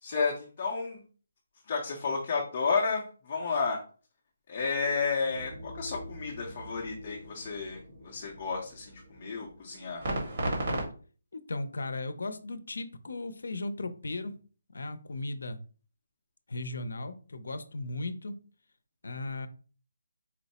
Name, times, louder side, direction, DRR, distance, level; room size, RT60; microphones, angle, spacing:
voice 1, 0.0-1.0 1.7-3.8 4.5-10.0, left 4 dB, 25° left, -1 dB, 0.6 m, -32 dB
sound 1, 5.3-10.9, right 1 dB, 35° right, 1.3 m, -38 dB
voice 2, 11.3-14.3 14.7-15.6 16.5-18.4 19.0-19.5, left 2 dB, 80° left, 11 dB, 0.5 m, -36 dB
4.4 x 2.0 x 4.1 m, 0.38 s
hypercardioid pair, 175°, 0 cm